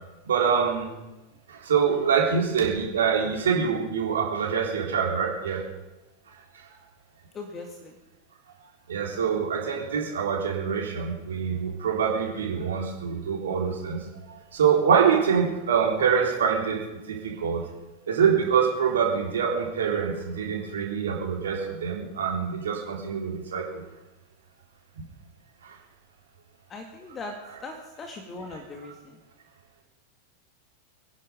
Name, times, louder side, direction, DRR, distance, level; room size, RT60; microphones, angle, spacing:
voice 1, 0.3-0.9 1.5-5.6 6.7-6.8 8.9-14.0 14.3-16.8 17.1-17.7 18.1-23.8 25.0-25.1 25.6-25.8, right 6 dB, 65° right, 0 dB, 3.7 m, -25 dB
voice 2, 7.3-8.0 13.1-13.3 26.7-29.2, left 3 dB, 25° left, 4 dB, 1.9 m, -40 dB
24.5 x 11.0 x 5.2 m, 1.0 s
figure-of-eight pair, 90°, 0 cm